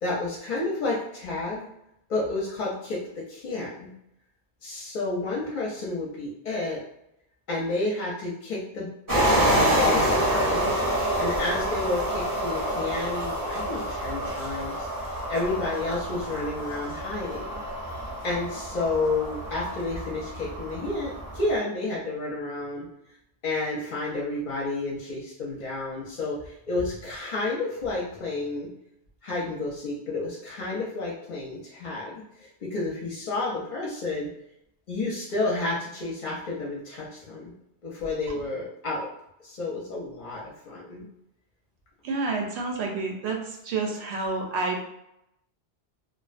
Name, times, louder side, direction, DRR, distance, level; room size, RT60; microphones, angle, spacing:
voice 1, 0.0-1.7 2.1-3.9 4.6-6.8 7.5-17.6 18.2-22.9 23.4-28.7 29.2-34.3 34.9-37.5 37.8-39.1 39.4-41.0, left 2 dB, 55° left, -5 dB, 0.6 m, -31 dB
sound 1, 9.1-21.6, right 1 dB, 20° right, 0.6 m, -27 dB
voice 2, 42.0-44.8, right 3 dB, 80° right, 2 dB, 0.9 m, -29 dB
2.4 x 2.1 x 2.4 m, 0.82 s
omnidirectional pair, 1.1 m